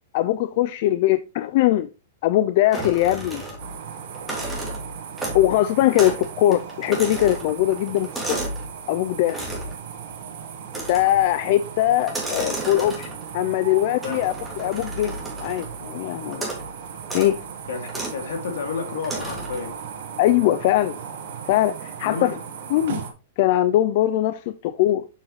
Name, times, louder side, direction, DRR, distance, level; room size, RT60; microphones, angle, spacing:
voice 1, 0.1-1.9 2.2-3.4 5.3-8.4 8.9-9.4 10.9-15.1 15.4-16.5 17.1-17.4 20.2-21.0 21.5-22.3 22.7-23.0 23.4-25.1, left 13 dB, 50° left, 0.4 m, -21 dB
sound 1, 2.7-3.8 4.1-5.6 6.0-6.3 6.5-8.7 9.3-9.8 10.7-11.2 12.0-13.3 14.0-15.7 16.3-16.7 17.0-17.3 17.9-18.2 19.0-19.6, right 2 dB, 5° right, 2.2 m, -32 dB
sound 2, 3.6-23.1, right 7 dB, 65° right, 1.5 m, -37 dB
voice 2, 17.7-19.8 22.0-22.4, left 5 dB, 75° left, 2.1 m, -30 dB
7.3 x 5.5 x 3.1 m
hypercardioid pair, 150°, 0 cm